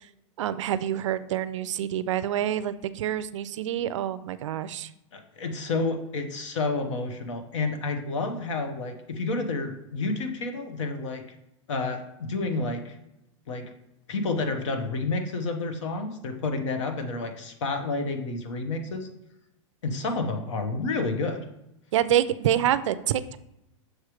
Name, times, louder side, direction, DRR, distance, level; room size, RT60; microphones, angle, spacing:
voice 1, 0.4-4.9 21.9-23.4, right 11 dB, 65° right, 14 dB, 0.4 m, -27 dB
voice 2, 5.1-11.2 11.7-12.9 13.5-13.6 14.1-19.1 19.8-21.4, left 3 dB, 65° left, 6 dB, 1.0 m, -30 dB
6.4 x 3.1 x 4.9 m, 0.87 s
supercardioid pair, 175°, 17 cm